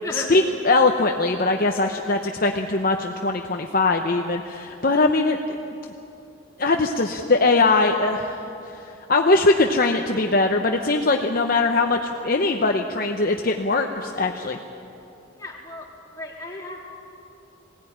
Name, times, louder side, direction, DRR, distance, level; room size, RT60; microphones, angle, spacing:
voice 1, 0.1-5.4 6.6-8.7 9.1-14.6, left 3 dB, 45° left, 3 dB, 0.8 m, -21 dB
voice 2, 15.4-16.8, left 2 dB, 15° left, -3 dB, 3.2 m, -35 dB
21.0 x 17.0 x 10.0 m, 2.8 s
head